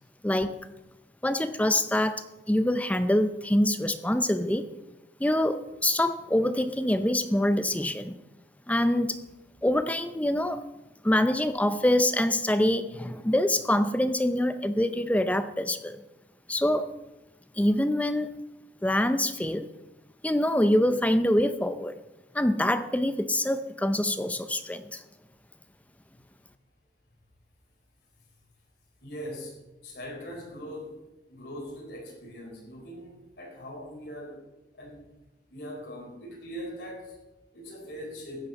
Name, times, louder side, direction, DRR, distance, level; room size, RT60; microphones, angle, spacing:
voice 1, 0.2-0.6 1.2-4.7 5.2-8.2 8.7-9.2 9.6-10.6 11.0-16.0 16.5-16.9 17.6-18.3 18.8-19.7 20.2-21.9 22.3-25.0, left 1 dB, 10° left, 10 dB, 0.6 m, -25 dB
voice 2, 29.0-34.4 34.7-35.1 35.5-38.5, equal, 65° left, 0 dB, 4.3 m, -41 dB
15.0 x 8.7 x 5.3 m, 0.99 s
head